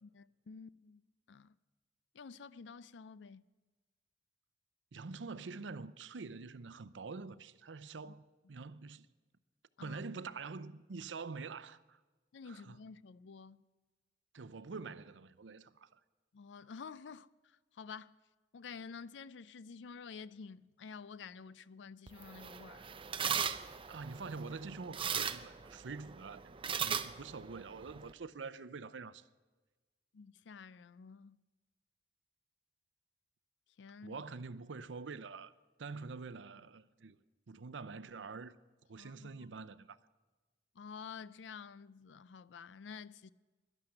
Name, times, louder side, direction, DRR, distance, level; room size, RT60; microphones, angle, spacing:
voice 1, 0.0-1.0 1.3-1.6 2.1-3.4 8.0-8.1 9.8-10.0 12.3-13.6 16.3-18.2 18.5-22.9 30.1-31.4 33.8-34.2 39.0-39.5 40.7-43.3, left 5 dB, 75° left, 0.4 m, -50 dB
voice 2, 4.9-8.2 8.5-9.1 9.8-12.0 12.5-12.8 14.3-16.0 23.9-26.4 26.8-29.3 34.0-35.5 35.8-37.2 37.5-38.6 38.9-40.0, right 4 dB, 85° right, 0.6 m, -46 dB
sound 1, 22.1-28.1, right 7 dB, 30° right, 0.6 m, -39 dB
12.0 x 11.5 x 7.7 m
head